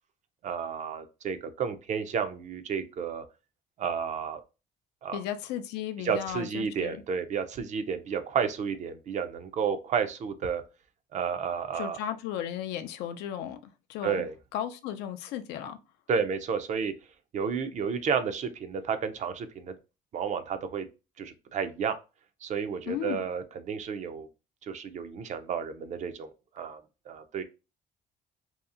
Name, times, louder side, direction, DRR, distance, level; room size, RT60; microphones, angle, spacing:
voice 1, 0.4-3.2 3.8-4.4 5.0-5.2 6.0-10.6 11.1-12.0 14.0-14.3 16.1-16.9 17.3-19.7 20.1-20.9 21.2-22.0 22.4-24.3 24.7-26.3 26.6-26.8 27.1-27.4, right 6 dB, 45° right, 0.4 m, -31 dB
voice 2, 5.1-7.0 11.7-15.8 22.9-23.2, left 10 dB, 85° left, 0.4 m, -35 dB
2.7 x 2.4 x 2.4 m
cardioid pair, 110°, 17 cm